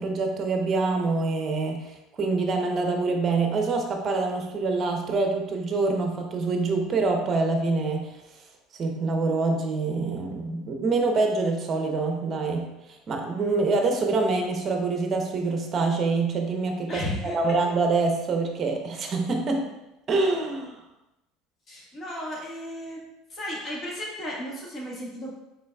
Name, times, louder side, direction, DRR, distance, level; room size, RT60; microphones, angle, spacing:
voice 1, 0.0-8.2 8.7-17.1 17.3-19.7 20.1-20.8, right 3 dB, 35° right, 3 dB, 0.8 m, -25 dB
voice 2, 16.9-17.3 21.7-23.0 23.3-25.3, left 1 dB, 35° left, -4 dB, 1.5 m, -34 dB
5.2 x 4.0 x 2.3 m, 0.95 s
supercardioid pair, 110°, 0 cm